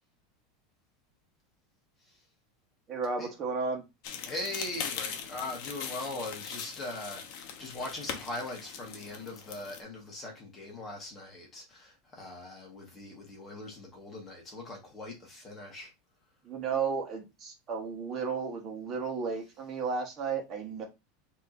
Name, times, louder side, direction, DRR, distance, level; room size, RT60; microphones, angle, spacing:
voice 1, 2.9-3.8 16.4-20.8, right 5 dB, 30° right, 1.3 m, -33 dB
sound 1, 4.0-9.8, left 7 dB, 50° left, 0.9 m, -40 dB
voice 2, 4.2-15.9, left 2 dB, 20° left, 1.5 m, -40 dB
6.3 x 3.1 x 2.6 m
supercardioid pair, 165°, 0 cm